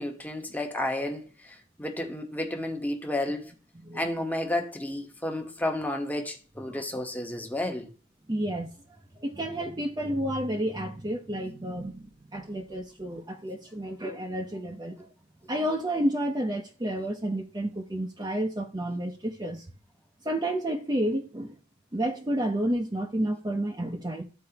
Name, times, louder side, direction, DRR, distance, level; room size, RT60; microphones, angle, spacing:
voice 1, 0.0-3.5 3.9-7.9, left 1 dB, 10° left, 1.1 m, -32 dB
voice 2, 3.7-4.1 6.7-6.8 8.3-8.7 9.2-15.1 15.5-19.6 20.2-21.6 21.9-24.2, right 1 dB, 20° right, 0.7 m, -30 dB
13.5 x 4.6 x 2.9 m
head